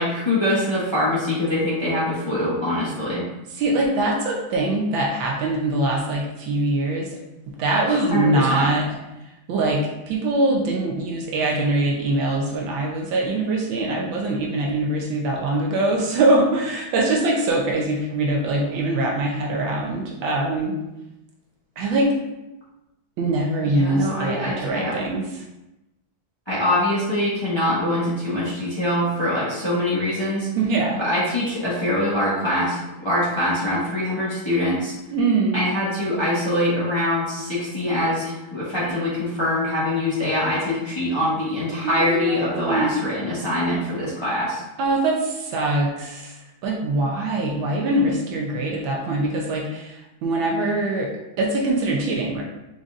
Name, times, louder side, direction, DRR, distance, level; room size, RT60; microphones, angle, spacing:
voice 1, 0.0-3.2 7.8-8.6 23.6-25.1 26.5-30.5 31.0-34.9 35.5-44.6, left 1 dB, 15° left, -9 dB, 1.0 m, -24 dB
voice 2, 3.5-7.1 7.6-8.9 9.5-20.8 21.8-22.1 23.2-25.4 30.5-31.0 35.1-35.6 38.8-39.0 41.8-43.0 44.8-46.4 46.6-51.1 51.4-52.4, right 2 dB, 80° right, -1 dB, 1.4 m, -23 dB
5.1 x 3.9 x 2.4 m, 0.96 s
omnidirectional pair, 2.2 m